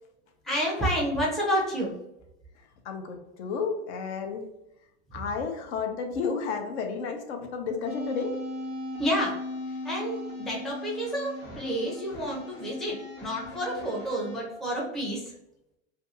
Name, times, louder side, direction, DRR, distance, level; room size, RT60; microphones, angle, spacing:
voice 1, 0.4-1.9 9.0-9.4 9.8-15.3, equal, ahead, -4 dB, 0.4 m, -29 dB
voice 2, 2.8-4.4 5.1-8.3, left 5 dB, 70° left, 4 dB, 0.6 m, -32 dB
sound 1, 7.9-14.4, left 2 dB, 40° left, 0.9 m, -38 dB
2.5 x 2.4 x 2.7 m, 0.86 s
hypercardioid pair, 125°, 36 cm